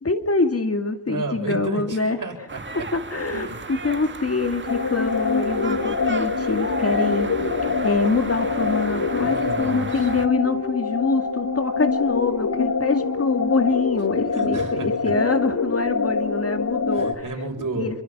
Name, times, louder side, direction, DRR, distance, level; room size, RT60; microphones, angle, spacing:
voice 1, 0.0-2.2 2.9-7.3 7.8-17.2 17.8-17.9, left 3 dB, 40° left, 7 dB, 2.3 m, -25 dB
voice 2, 1.1-2.9 3.3-3.7 9.2-10.2 14.3-15.1 16.9-18.0, right 2 dB, 55° right, 3 dB, 7.1 m, -32 dB
sound 1, 2.5-10.3, right 3 dB, 30° right, 2.0 m, -35 dB
sound 2, 4.7-17.1, left 4 dB, 55° left, 2.4 m, -25 dB
28.5 x 23.5 x 6.1 m, 0.88 s
cardioid pair, 75°, 38 cm